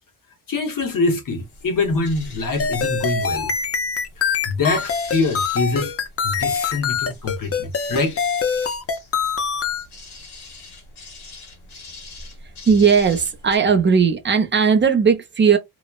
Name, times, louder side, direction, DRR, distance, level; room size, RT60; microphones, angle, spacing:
voice 1, 0.5-3.5 4.4-5.9 6.2-8.2, left 3 dB, 55° left, 1.0 m, -24 dB
sound 1, 1.3-13.6, left 2 dB, 85° left, 1.5 m, -43 dB
sound 2, 2.6-9.8, left 5 dB, 40° left, 0.5 m, -24 dB
voice 2, 12.7-15.6, right 6 dB, 30° right, 0.6 m, -17 dB
3.0 x 2.1 x 2.3 m
wide cardioid pair, 150°, 39 cm